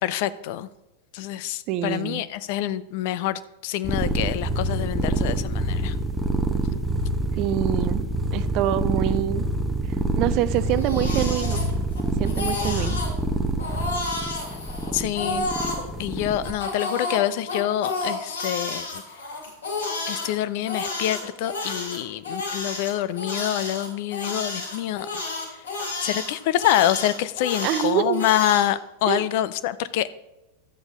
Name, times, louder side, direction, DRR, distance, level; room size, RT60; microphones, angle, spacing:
voice 1, 0.0-0.7 1.1-5.9 14.9-15.5 16.0-19.0 20.1-25.1 26.0-30.1, left 12 dB, 50° left, 15 dB, 0.5 m, -26 dB
voice 2, 1.7-2.2 7.4-8.0 8.3-9.5 10.2-11.6 12.2-13.0 27.6-28.2 29.1-29.3, right 13 dB, 40° right, 14 dB, 0.5 m, -25 dB
sound 1, 3.8-16.5, right 2 dB, 5° right, 0.9 m, -26 dB
Crying sobbing, 10.5-12.0 12.3-13.1 13.6-15.8 16.4-20.3 20.7-28.7, left 3 dB, 70° left, 2.6 m, -31 dB
12.5 x 7.9 x 3.8 m, 0.97 s
figure-of-eight pair, 90°, 0 cm